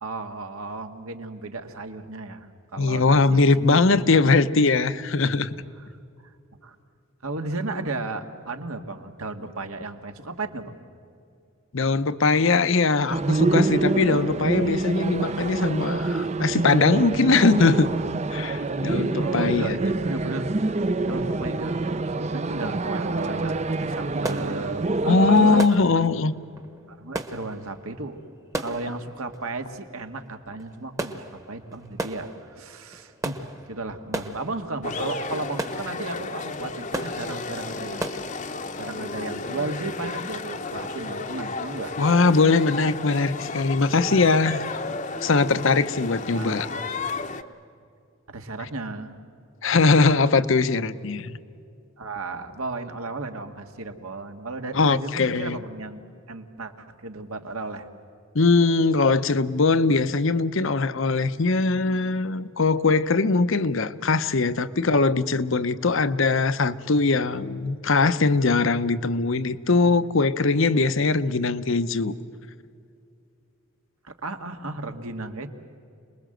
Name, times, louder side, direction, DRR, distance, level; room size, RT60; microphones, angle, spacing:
voice 1, 0.0-4.0 4.3-4.4 5.8-5.9 6.2-6.3 6.6-6.8 7.2-10.8 19.2-20.5 21.1-25.6 25.9-26.1 26.9-28.2 28.6-33.4 33.7-38.1 38.4-38.5 38.8-41.9 46.3-46.7 48.3-49.2 52.0-57.9 74.0-75.5, right 3 dB, 80° right, 6 dB, 1.8 m, -34 dB
voice 2, 2.8-5.5 11.7-17.9 18.3-19.8 25.1-26.3 42.0-44.7 45.2-46.7 49.6-51.4 54.7-55.6 58.3-72.1, left 3 dB, 65° left, 14 dB, 0.8 m, -21 dB
sound 1, 13.1-25.6, right 3 dB, 30° right, 0.5 m, -26 dB
sound 2, 24.2-38.3, right 1 dB, 15° right, 1.1 m, -37 dB
sound 3, 34.8-47.4, left 3 dB, 35° left, 0.8 m, -33 dB
27.5 x 21.0 x 7.8 m, 2.4 s
head